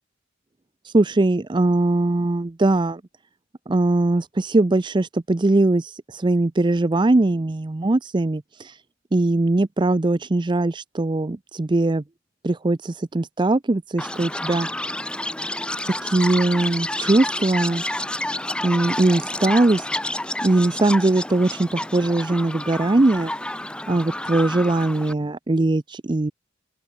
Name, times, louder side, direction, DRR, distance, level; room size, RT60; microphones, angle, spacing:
voice 1, 0.8-3.0 3.7-8.8 9.1-12.0 12.4-14.7 15.8-17.8 18.6-19.9 20.4-23.3 23.9-26.3, right 2 dB, 25° right, 0.5 m, -21 dB
Chirp tweet, 14.0-25.1, left 1 dB, 5° left, 1.0 m, -29 dB
open air
head